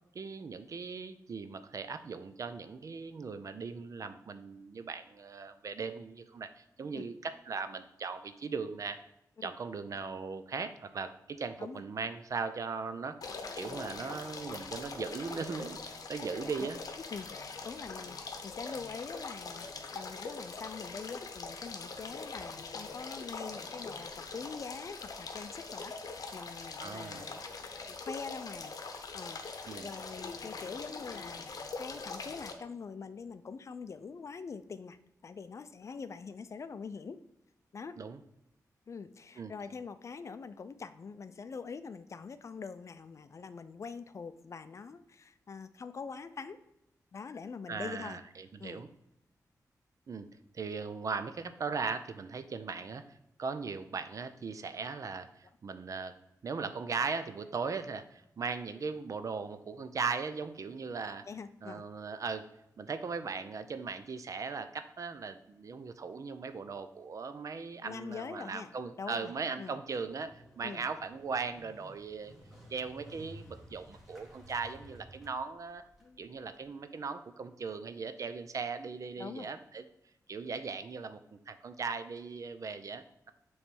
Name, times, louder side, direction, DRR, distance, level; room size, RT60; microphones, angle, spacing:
voice 1, 0.1-9.0 9.4-15.8 16.1-16.8 26.8-27.2 29.7-29.9 38.0-38.2 39.4-39.5 47.7-48.9 50.1-50.3 50.5-56.1 56.4-61.2 61.6-62.4 62.8-72.3 72.7-75.8 76.2-79.8 80.3-83.3, right 5 dB, 55° right, 10 dB, 0.5 m, -38 dB
sound 1, 13.2-32.5, left 4 dB, 65° left, 0.8 m, -43 dB
voice 2, 17.1-27.4 27.9-28.7 29.1-35.0 35.2-37.2 37.7-38.0 38.9-46.6 47.1-48.2 48.6-48.8 61.3-61.8 67.8-68.7 69.0-69.8 70.6-70.9 76.0-76.2 79.2-79.5, left 5 dB, 50° left, 12 dB, 0.4 m, -44 dB
Motorcycle, 70.0-76.7, equal, 5° right, 1.6 m, -55 dB
7.1 x 3.2 x 5.3 m, 0.84 s
wide cardioid pair, 105°, 7 cm